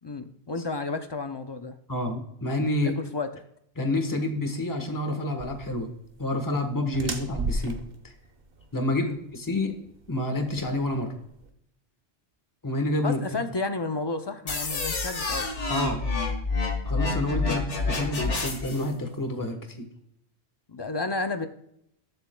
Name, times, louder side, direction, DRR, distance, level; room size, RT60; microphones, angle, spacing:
voice 1, 0.0-1.8 2.8-3.4 7.0-7.1 9.0-9.2 13.0-15.5 17.4-17.6 20.7-21.5, left 3 dB, 35° left, 7 dB, 0.4 m, -32 dB
voice 2, 1.9-3.0 3.8-5.9 6.2-7.8 8.7-9.1 9.3-9.8 10.1-11.1 12.6-13.2 15.7-16.0 16.8-19.9, left 1 dB, 20° left, 5 dB, 1.2 m, -28 dB
sound 1, 5.4-11.5, right 2 dB, 55° right, 1.2 m, -36 dB
sound 2, 14.5-18.9, left 3 dB, 90° left, 1.8 m, -28 dB
19.5 x 7.1 x 2.2 m, 0.76 s
omnidirectional pair, 1.2 m